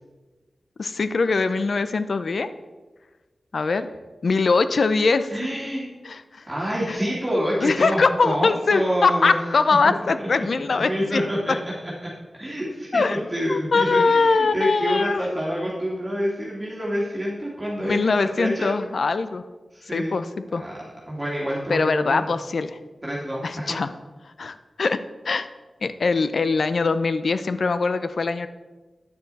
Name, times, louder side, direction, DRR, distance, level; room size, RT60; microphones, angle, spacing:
voice 1, 0.8-2.5 3.5-3.9 4.2-5.3 6.0-6.4 6.9-7.0 7.6-11.3 12.9-13.2 13.5-15.4 17.8-19.4 19.9-20.2 20.5-20.6 21.7-22.8 23.4-23.9 24.4-25.0 25.2-25.5 25.8-28.5, left 4 dB, 65° left, 12 dB, 0.5 m, -22 dB
voice 2, 5.3-5.8 6.5-9.4 9.8-10.4 10.9-11.9 12.3-18.1 18.4-18.7 19.7-20.2 20.6-22.2 23.0-23.8, equal, 15° right, -7 dB, 2.2 m, -27 dB
9.3 x 6.5 x 4.1 m, 1.2 s
wide cardioid pair, 75°, 0 cm